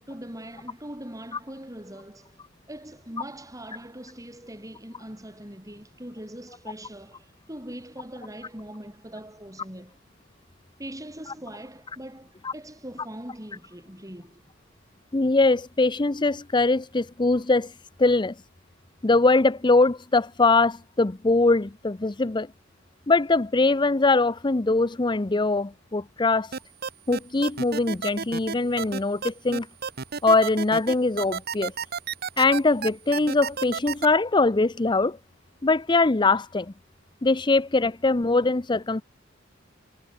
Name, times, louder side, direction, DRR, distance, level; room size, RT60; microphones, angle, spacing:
voice 1, 0.0-2.4 2.7-10.0 10.8-14.4, right 1 dB, 15° right, 7.6 m, -41 dB
voice 2, 15.1-17.7 18.0-18.3 19.0-22.5 23.1-26.5 27.1-29.7 30.2-31.7 32.4-35.2 35.6-36.7 37.2-39.0, left 3 dB, 25° left, 0.6 m, -22 dB
sound 1, 26.5-34.1, right 6 dB, 55° right, 1.0 m, -31 dB
head